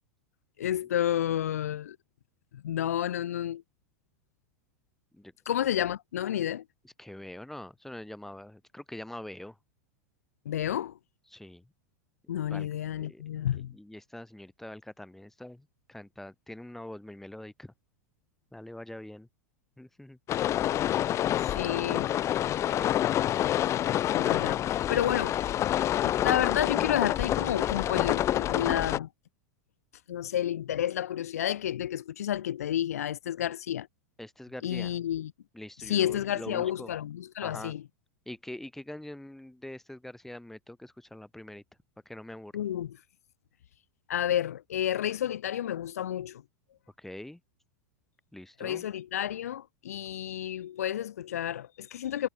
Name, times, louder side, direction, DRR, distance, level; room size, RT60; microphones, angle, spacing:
voice 1, 0.6-2.0 2.5-3.6 5.5-6.6 10.4-10.9 12.3-13.7 21.4-22.1 24.1-25.4 26.0-29.1 30.1-33.9 34.6-35.3 35.9-37.8 42.5-42.9 44.1-46.4 48.6-52.3, left 11 dB, 70° left, 1.1 m, -30 dB
voice 2, 6.8-9.6 11.3-11.7 12.2-12.7 13.0-13.2 13.5-17.7 18.5-19.3 19.8-20.2 21.5-23.3 34.2-35.0 35.5-36.9 37.4-37.7 38.3-41.6 42.1-42.5 47.0-47.4 48.3-48.9 50.1-50.2, left 1 dB, 5° left, 4.2 m, -44 dB
sound 1, 20.3-29.0, left 12 dB, 35° left, 2.1 m, -27 dB
figure-of-eight pair, 90°, 9 cm